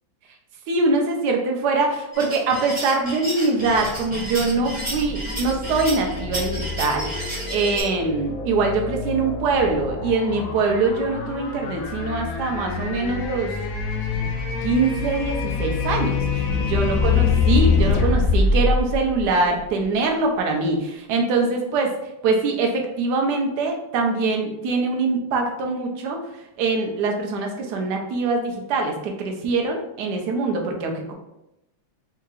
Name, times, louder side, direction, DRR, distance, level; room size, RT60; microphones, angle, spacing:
voice 1, 0.7-13.5 14.1-14.3 14.6-21.9 22.2-26.2 26.6-31.1, right 3 dB, 70° right, 2 dB, 1.1 m, -23 dB
sound 1, 2.1-7.8, right 1 dB, 5° right, 1.2 m, -32 dB
sound 2, 3.7-19.8, left 4 dB, 90° left, 0.7 m, -25 dB
4.6 x 2.8 x 2.4 m, 0.88 s
omnidirectional pair, 2.1 m